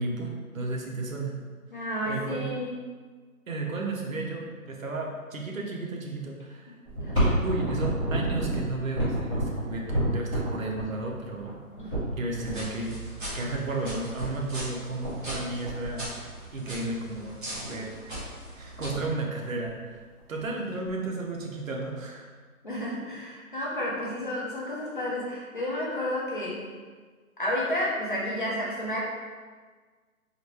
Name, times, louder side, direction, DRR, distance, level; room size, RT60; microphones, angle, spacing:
voice 1, 0.0-1.4 2.0-2.5 3.5-6.7 7.1-11.6 12.2-13.0 13.3-16.1 16.5-18.0 18.5-20.0 20.3-22.3, right 2 dB, 65° right, 0 dB, 0.8 m, -33 dB
voice 2, 1.7-2.8 7.0-7.4 11.8-12.0 20.7-20.8 22.6-26.7 27.4-29.0, left 1 dB, 35° left, -5 dB, 0.6 m, -31 dB
sound 1, 6.8-12.5 13.5-13.6 13.8-13.9 14.2-14.7 15.0-15.4 15.6-16.5 17.1-17.2 17.6-17.9 18.3-18.4 18.5-19.1 19.6-20.4 20.8-20.9 21.8-21.9, right 1 dB, 5° left, 0.8 m, -29 dB
sound 2, 12.3-18.9, right 1 dB, 35° right, 1.1 m, -40 dB
3.8 x 2.1 x 3.2 m, 1.5 s
hypercardioid pair, 165°, 44 cm